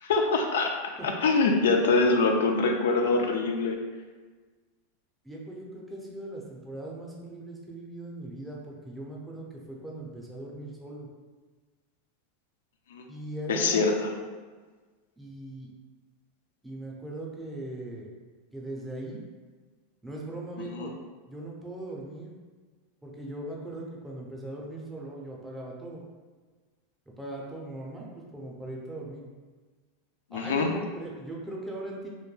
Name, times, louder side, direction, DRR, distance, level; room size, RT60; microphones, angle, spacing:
voice 1, 0.0-0.7 1.0-3.8 12.9-13.0 13.5-14.1 20.6-20.9 30.3-30.7, left 3 dB, 90° left, 3 dB, 0.3 m, -24 dB
voice 2, 5.2-11.1 13.1-13.9 15.2-15.7 16.6-18.1 18.5-19.2 20.0-20.9 21.3-22.3 23.0-26.0 27.1-29.2 30.3-32.1, right 1 dB, 5° right, -3 dB, 0.5 m, -39 dB
2.2 x 2.2 x 3.1 m, 1.4 s
supercardioid pair, 135°, 0 cm